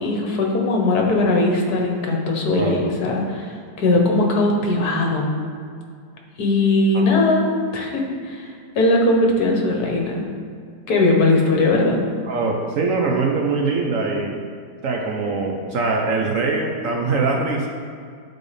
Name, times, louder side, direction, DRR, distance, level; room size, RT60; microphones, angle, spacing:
voice 1, 0.0-5.3 6.4-7.5 7.7-10.2 10.9-12.0, left 2 dB, 70° left, 0 dB, 1.5 m, -19 dB
voice 2, 2.5-2.8 6.9-7.0 12.3-14.4 14.8-17.7, right 3 dB, 60° right, 1 dB, 1.0 m, -22 dB
10.5 x 4.2 x 3.3 m, 2.2 s
omnidirectional pair, 1.8 m